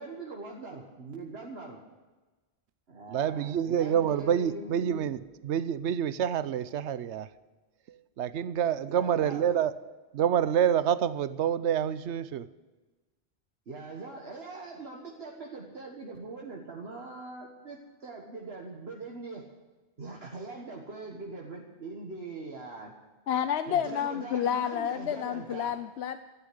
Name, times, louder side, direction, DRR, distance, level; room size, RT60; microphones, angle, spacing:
voice 1, 0.0-1.8 2.9-5.1 8.9-9.6 13.7-19.5 20.0-22.9 23.7-25.8, right 3 dB, 65° right, 1.8 m, -42 dB
voice 2, 3.1-7.3 8.2-9.7 10.1-12.5, right 9 dB, 85° right, 1.0 m, -27 dB
voice 3, 23.3-26.2, left 9 dB, 70° left, 0.9 m, -30 dB
13.5 x 10.0 x 9.6 m
omnidirectional pair, 1.1 m